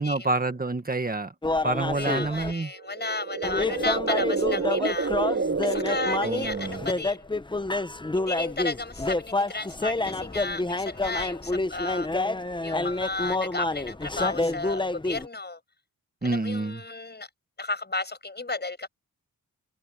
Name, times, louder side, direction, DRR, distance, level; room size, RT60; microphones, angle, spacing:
voice 1, 0.0-1.3 1.6-2.7 6.2-6.8 16.2-16.8, right 3 dB, 25° right, 1.8 m, -28 dB
sound 1, 1.4-2.5 3.4-15.3, left 2 dB, 15° left, 0.8 m, -28 dB
voice 2, 1.9-7.3 8.2-12.3 12.6-15.6 16.2-17.3 17.6-18.9, left 3 dB, 30° left, 5.9 m, -33 dB
sound 2, 2.7-7.2, right 4 dB, 40° right, 3.2 m, -29 dB
wide cardioid pair, 90°, 35 cm